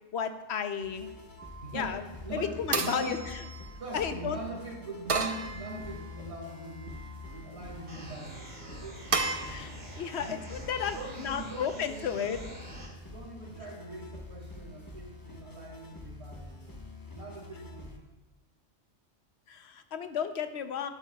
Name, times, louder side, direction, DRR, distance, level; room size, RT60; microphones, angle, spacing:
voice 1, 0.1-1.1 1.7-2.0 2.3-3.2 3.9-4.4 9.4-12.4 19.5-20.9, left 7 dB, 65° left, 9 dB, 0.9 m, -33 dB
sound 1, 0.8-18.0, left 2 dB, 20° left, 0.9 m, -46 dB
sound 2, 1.4-1.9 2.7-4.1 5.1-6.2 6.7-7.4 9.1-9.3, right 4 dB, 35° right, 0.6 m, -33 dB
voice 2, 1.6-2.0 2.2-3.3 3.8-7.0 7.3-9.5 10.2-10.4 10.9-12.8 13.0-16.7 17.1-18.0, right 2 dB, 60° right, -1 dB, 2.4 m, -42 dB
sound 3, 7.9-12.9, right 2 dB, 80° right, 3.0 m, -46 dB
12.0 x 11.5 x 2.3 m, 1.1 s
omnidirectional pair, 1.3 m